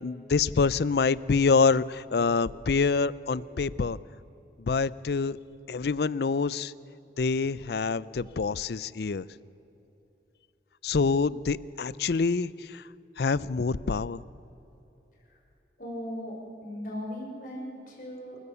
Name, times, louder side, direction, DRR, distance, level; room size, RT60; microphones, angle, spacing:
voice 1, 0.0-4.0 4.7-5.4 5.7-6.7 7.2-9.3 10.8-12.8 13.2-14.2, left 4 dB, 65° left, 19 dB, 0.5 m, -26 dB
voice 2, 15.8-18.4, equal, 50° left, -2 dB, 5.8 m, -38 dB
28.5 x 14.0 x 6.9 m, 3.0 s
head